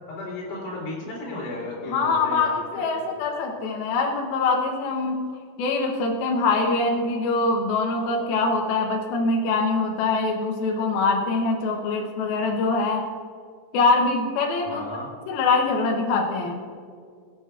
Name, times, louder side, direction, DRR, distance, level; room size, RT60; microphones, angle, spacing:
voice 1, 0.1-3.0 14.7-15.1, left 2 dB, 55° left, -6 dB, 4.6 m, -34 dB
voice 2, 1.9-5.2 5.6-13.1 13.7-14.8 15.3-16.6, left 3 dB, 75° left, 0 dB, 2.2 m, -23 dB
22.5 x 7.8 x 2.4 m, 2.2 s
omnidirectional pair, 5.5 m